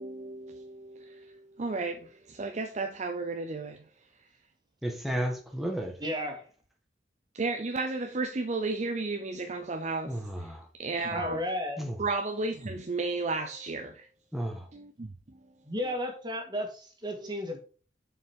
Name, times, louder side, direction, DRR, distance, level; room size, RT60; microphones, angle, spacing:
voice 1, 0.0-3.9 7.3-11.4 12.0-14.1 14.7-15.1 15.8-15.9 17.2-17.3, right 3 dB, 40° right, 0.6 m, -33 dB
voice 2, 4.8-5.9 10.0-10.6 11.8-11.9 14.3-14.7, equal, ahead, 1.5 m, -33 dB
voice 3, 6.0-6.4 11.1-11.8 15.6-17.6, equal, 25° right, 2.0 m, -33 dB
6.9 x 5.6 x 4.6 m
head